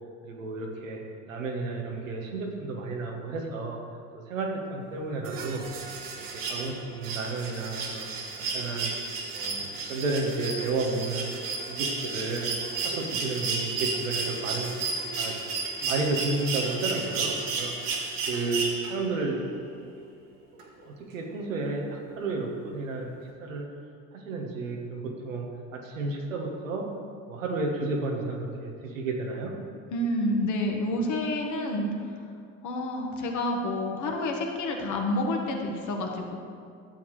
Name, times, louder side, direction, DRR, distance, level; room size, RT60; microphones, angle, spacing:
voice 1, 0.2-1.0 1.3-3.8 4.1-5.7 6.4-8.9 9.3-11.3 11.7-12.5 12.8-14.8 15.2-15.3 15.8-17.7 18.3-19.5 19.9-20.0 20.8-23.7 24.1-26.9 27.3-29.5, right 3 dB, 85° right, 1 dB, 1.2 m, -32 dB
sound 1, 5.2-19.2 20.6-20.7, right 4 dB, 60° right, 1.5 m, -32 dB
voice 2, 29.9-31.9 32.6-36.4, left 1 dB, 50° left, 2 dB, 1.5 m, -29 dB
11.5 x 7.2 x 3.2 m, 2.3 s
hypercardioid pair, 70°, 38 cm